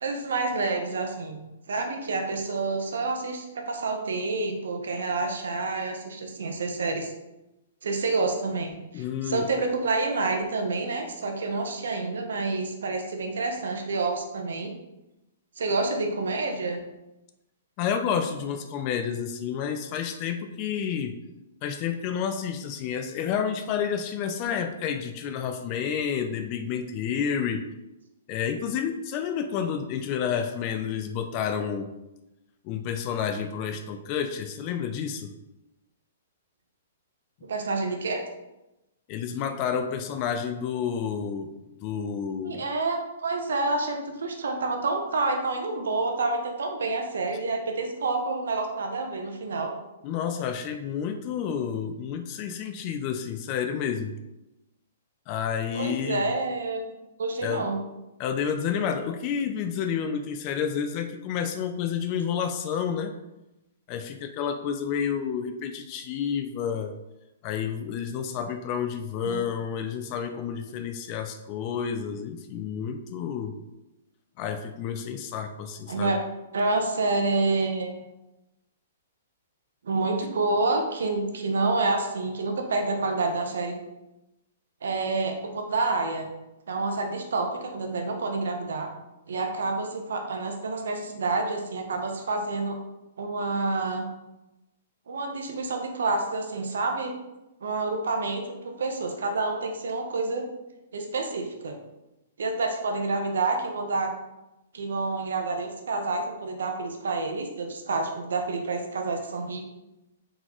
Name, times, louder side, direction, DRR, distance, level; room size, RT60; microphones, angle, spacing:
voice 1, 0.0-1.4 1.7-7.1 7.8-14.7 15.6-16.8 37.4-38.2 42.4-49.7 55.7-57.8 69.2-69.4 75.9-76.2 76.5-78.0 79.8-83.7 84.8-86.3 86.7-88.9 89.3-92.8 93.2-94.1 95.1-97.1 97.6-100.5 100.9-101.8 102.4-104.1 104.7-109.6, right 3 dB, 80° right, 4 dB, 0.8 m, -28 dB
voice 2, 8.9-9.5 17.8-21.1 21.6-27.6 28.3-31.9 32.6-35.3 39.1-41.5 41.8-42.6 50.0-54.1 55.3-56.2 57.4-57.7 58.2-63.2 63.9-66.9 67.4-73.5 74.4-76.1, left 7 dB, 35° left, 7 dB, 0.4 m, -30 dB
3.9 x 3.8 x 3.0 m, 0.96 s
hypercardioid pair, 145°, 0 cm